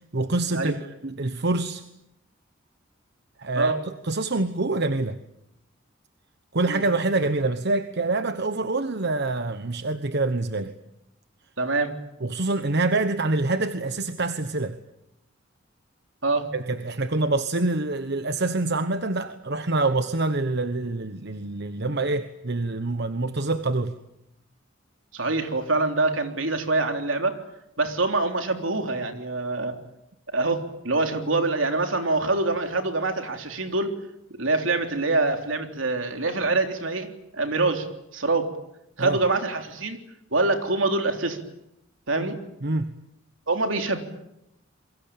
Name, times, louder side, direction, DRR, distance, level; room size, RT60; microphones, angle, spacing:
voice 1, 0.1-1.8 3.4-3.7 4.0-5.2 6.5-10.7 12.2-14.8 16.5-23.9 39.0-39.2 42.6-42.9, right 2 dB, 60° right, 10 dB, 1.2 m, -26 dB
voice 2, 11.6-11.9 16.2-16.4 25.1-27.4 27.8-29.8 30.3-34.0 34.4-37.9 38.1-38.5 39.0-40.0 40.3-41.4 42.1-42.4 43.5-44.0, right 3 dB, 80° right, 5 dB, 3.6 m, -25 dB
28.5 x 23.0 x 8.8 m, 0.83 s
head